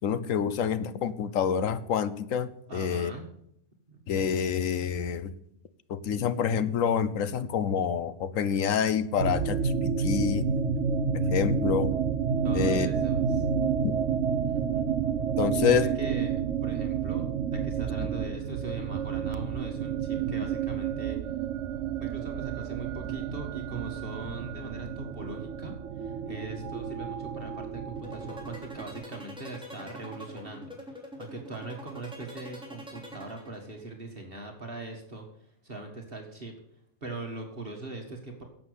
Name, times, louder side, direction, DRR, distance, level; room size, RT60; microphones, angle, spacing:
voice 1, 0.0-3.1 4.1-5.3 5.9-10.5 11.1-11.9 12.5-12.9 13.8-13.9 15.4-15.9, left 7 dB, 85° left, 14 dB, 1.2 m, -27 dB
voice 2, 2.7-3.3 3.9-4.0 12.4-13.5 14.3-14.9 15.5-21.2 22.0-35.3 35.6-36.5 37.0-38.4, right 3 dB, 45° right, 2 dB, 1.9 m, -41 dB
sound 1, 9.2-29.0, right 6 dB, 70° right, 0.9 m, -30 dB
sound 2, 28.0-33.9, equal, 5° right, 3.0 m, -44 dB
11.5 x 7.8 x 8.1 m, 0.71 s
omnidirectional pair, 1.3 m